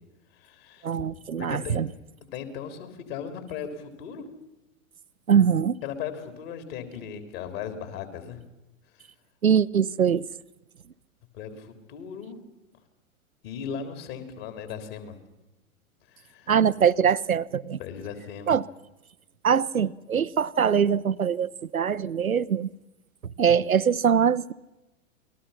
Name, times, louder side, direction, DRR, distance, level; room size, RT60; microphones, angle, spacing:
voice 1, 0.3-0.9 1.4-1.8 2.2-4.2 5.8-8.4 8.9-9.1 11.3-12.4 13.4-15.2 16.1-16.5 17.8-18.6, left 7 dB, 45° left, 3.7 m, -37 dB
voice 2, 0.8-1.9 5.3-5.8 9.4-10.2 16.5-17.8 18.5-18.6 19.4-22.7 23.4-24.5, right 7 dB, 85° right, 0.7 m, -22 dB
28.5 x 20.5 x 5.8 m
figure-of-eight pair, 105°, 41 cm